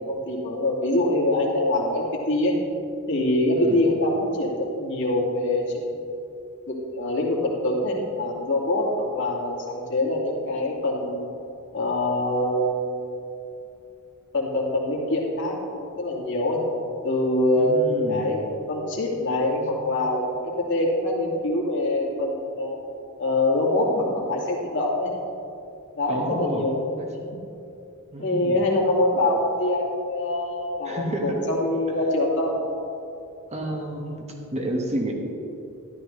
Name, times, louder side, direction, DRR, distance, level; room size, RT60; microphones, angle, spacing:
voice 1, 0.0-2.5 3.1-5.9 6.7-11.3 11.7-13.0 14.3-16.6 17.0-18.4 18.7-22.8 23.2-25.1 26.0-27.4 28.2-32.6, left 1 dB, 60° left, -3 dB, 2.4 m, -24 dB
voice 2, 17.6-18.4 26.1-26.7 27.0-27.1 28.1-28.6 30.8-31.4 33.5-34.2 34.5-35.1, right 1 dB, 30° right, 1 dB, 1.5 m, -30 dB
13.5 x 12.0 x 3.3 m, 2.7 s
head